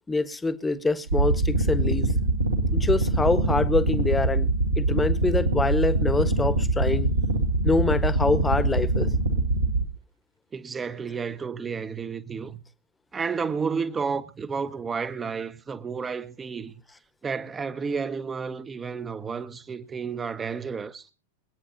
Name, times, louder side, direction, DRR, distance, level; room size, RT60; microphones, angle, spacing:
voice 1, 0.1-2.1 2.7-4.5 4.8-7.1 7.6-9.1, left 3 dB, 10° left, 1.5 m, -25 dB
sound 1, 1.1-9.8, right 2 dB, 75° right, 2.3 m, -24 dB
voice 2, 10.5-12.6 13.1-16.7 17.2-21.1, right 5 dB, 15° right, 1.2 m, -31 dB
26.0 x 9.4 x 2.9 m
figure-of-eight pair, 90°, 0 cm